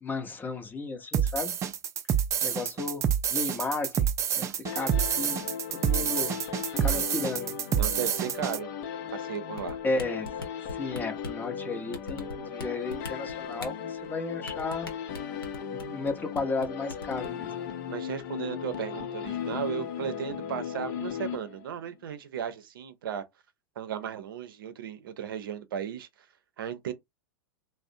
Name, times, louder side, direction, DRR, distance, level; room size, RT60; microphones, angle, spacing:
voice 1, 0.0-1.5 2.4-4.5 4.7-5.4 5.7-6.4 6.8-7.5 9.8-10.3 10.7-14.9 15.7-17.5, left 3 dB, 15° left, 0.6 m, -34 dB
sound 1, 1.1-8.6, right 8 dB, 25° right, 0.4 m, -28 dB
sound 2, 4.7-21.9, left 8 dB, 55° left, 0.6 m, -37 dB
voice 2, 7.8-8.7 9.1-9.8 17.9-23.2 23.8-26.1 26.6-26.9, right 9 dB, 70° right, 0.6 m, -35 dB
sound 3, 9.6-11.4 11.9-12.6 12.9-13.7 14.5-16.1 16.4-16.6 16.9-17.3, left 3 dB, 90° left, 0.7 m, -38 dB
2.4 x 2.0 x 2.6 m
hypercardioid pair, 105°, 12 cm